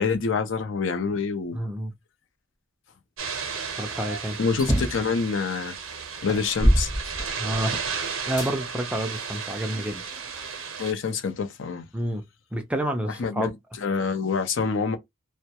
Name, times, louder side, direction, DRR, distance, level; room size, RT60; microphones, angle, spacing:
voice 1, 0.0-1.6 4.4-5.7 6.2-6.9 10.8-11.8 13.2-15.0, left 5 dB, 65° left, 0.5 m, -26 dB
voice 2, 1.5-1.9 3.8-4.4 7.4-7.8 8.3-10.3 11.9-12.2 12.5-13.5, right 1 dB, 5° right, 0.4 m, -29 dB
sound 1, 3.2-10.9, right 6 dB, 75° right, 0.6 m, -34 dB
sound 2, 4.6-5.1 5.7-5.8 6.3-7.7 8.4-8.5 9.2-10.3, equal, 20° left, 0.7 m, -24 dB
2.2 x 2.1 x 2.7 m
head